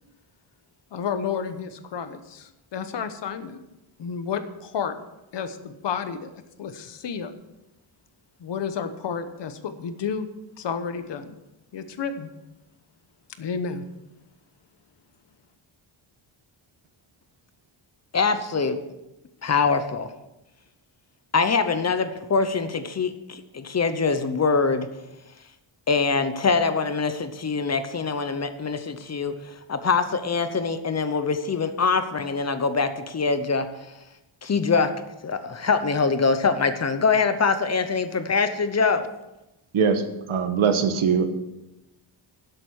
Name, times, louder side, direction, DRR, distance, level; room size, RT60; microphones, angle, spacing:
voice 1, 0.9-3.6 4.0-5.0 5.3-6.3 6.6-7.3 8.4-10.3 10.6-11.3 11.7-12.3 13.4-13.8, left 6 dB, 60° left, 10 dB, 1.1 m, -31 dB
voice 2, 18.1-18.8 19.4-20.1 21.3-24.9 25.9-33.7 34.4-34.9 35.2-39.1, left 4 dB, 30° left, 10 dB, 0.8 m, -24 dB
voice 3, 40.3-41.2, right 6 dB, 75° right, 7 dB, 1.5 m, -21 dB
11.5 x 7.8 x 6.3 m, 0.96 s
wide cardioid pair, 165°, 49 cm